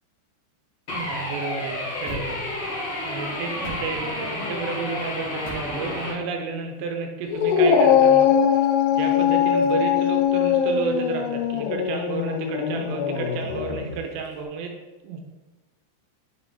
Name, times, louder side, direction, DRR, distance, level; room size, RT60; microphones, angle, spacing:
sound 1, 0.9-6.1, left 1 dB, 70° left, 1.4 m, -31 dB
voice 1, 0.9-2.4 3.0-8.6 8.9-14.7 15.1-15.2, right 5 dB, 80° right, 3 dB, 2.8 m, -32 dB
sound 2, 2.0-2.9 3.5-4.7 5.4-6.1 7.6-7.7, equal, 45° left, 1.7 m, -39 dB
Dog, 7.3-13.9, left 8 dB, 85° left, 3.0 m, -21 dB
7.9 x 3.7 x 3.9 m, 1.2 s
omnidirectional pair, 5.4 m